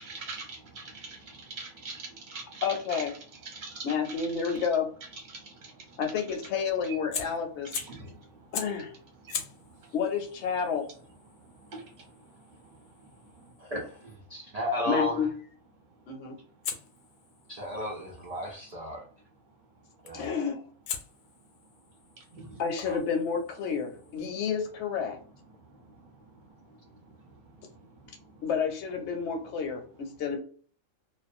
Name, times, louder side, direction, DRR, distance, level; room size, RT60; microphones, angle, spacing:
voice 1, 0.0-3.0 3.4-4.7 5.3-6.0 7.8-8.4 9.2-9.4 9.7-9.9 11.3-12.1 12.5-13.4 22.2-22.6 27.5-28.3, right 3 dB, 40° right, 0 dB, 0.9 m, -44 dB
voice 2, 2.6-3.1 3.8-4.9 6.0-7.7 8.5-8.9 9.9-10.9 14.9-15.3 16.1-16.4 20.1-20.6 22.6-25.2 28.4-30.4, left 6 dB, 65° left, 4 dB, 0.8 m, -30 dB
Fire, 7.1-8.1 8.5-8.9 9.3-14.2 16.6-18.7 20.0-20.3 20.9-24.3, left 7 dB, 85° left, 1.0 m, -42 dB
voice 3, 13.6-15.3 17.5-19.0 20.0-20.3 22.8-23.0, left 1 dB, 75° right, -2 dB, 0.3 m, -34 dB
2.4 x 2.1 x 2.5 m, 0.43 s
omnidirectional pair, 1.5 m